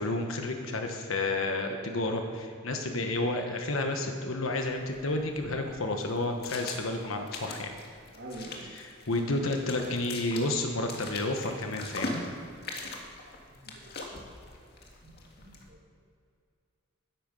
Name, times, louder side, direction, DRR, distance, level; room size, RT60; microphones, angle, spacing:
voice 1, 0.0-7.7 8.7-12.2, left 2 dB, 80° left, 4 dB, 1.3 m, -31 dB
sound 1, 4.6-15.7, left 2 dB, 55° left, 1.9 m, -42 dB
voice 2, 8.1-8.8 9.2-9.6 13.5-13.9 14.1-14.3 15.0-15.8, right 1 dB, 55° right, -6 dB, 2.0 m, -46 dB
14.0 x 10.5 x 5.5 m, 2.3 s
head